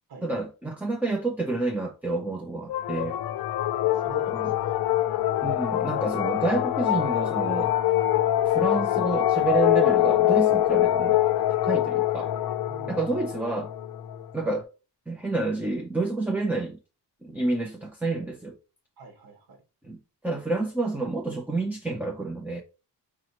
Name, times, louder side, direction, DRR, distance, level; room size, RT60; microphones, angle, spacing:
voice 1, 0.2-3.2 4.3-4.5 5.4-7.7 8.4-11.2 11.6-12.3 12.9-13.7 14.3-14.7 15.1-16.8 17.2-18.6 19.8-22.6, right 3 dB, 5° right, 0.4 m, -29 dB
sound 1, 2.7-14.5, left 13 dB, 55° left, 0.5 m, -24 dB
voice 2, 3.7-4.7 12.7-13.2 19.0-19.6, right 5 dB, 60° right, 1.7 m, -47 dB
5.0 x 3.0 x 2.8 m
wide cardioid pair, 160°, 42 cm